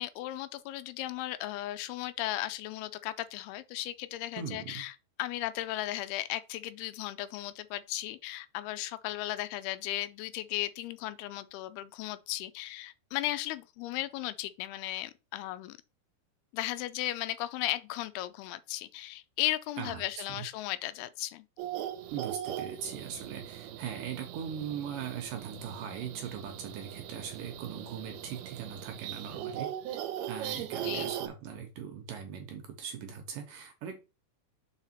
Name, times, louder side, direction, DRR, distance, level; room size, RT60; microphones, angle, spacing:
voice 1, 0.0-4.9 5.2-15.8 16.5-21.5 30.8-31.1, left 15 dB, 85° left, 2.5 m, -36 dB
voice 2, 4.4-4.8 19.8-20.5 22.1-30.0 30.3-34.2, right 8 dB, 70° right, 2.3 m, -40 dB
sound 1, 21.6-31.3, right 11 dB, 85° right, 2.8 m, -39 dB
5.7 x 4.8 x 4.4 m
omnidirectional pair, 4.5 m